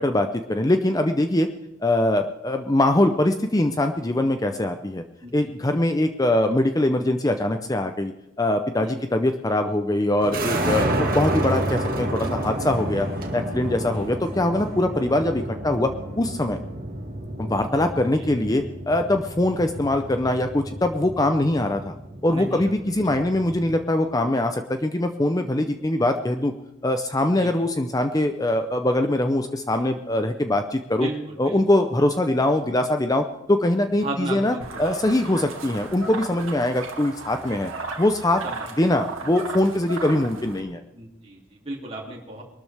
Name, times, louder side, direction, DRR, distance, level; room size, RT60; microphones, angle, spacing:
voice 1, 0.0-1.5 1.8-5.0 5.3-13.1 13.3-16.6 17.4-21.9 22.2-26.5 26.8-31.1 31.4-37.7 38.0-38.4 38.8-40.8, left 1 dB, 15° left, 7 dB, 0.6 m, -22 dB
sound 1, 10.2-23.8, right 1 dB, 45° right, 2.1 m, -30 dB
voice 2, 22.3-22.7 27.4-27.5 31.0-31.6 34.0-35.0 35.2-35.4 38.4-38.6 40.9-42.4, right 2 dB, 30° right, -3 dB, 2.8 m, -34 dB
sound 2, 34.6-40.6, right 4 dB, 70° right, 2.0 m, -36 dB
22.5 x 13.0 x 3.4 m, 0.93 s
head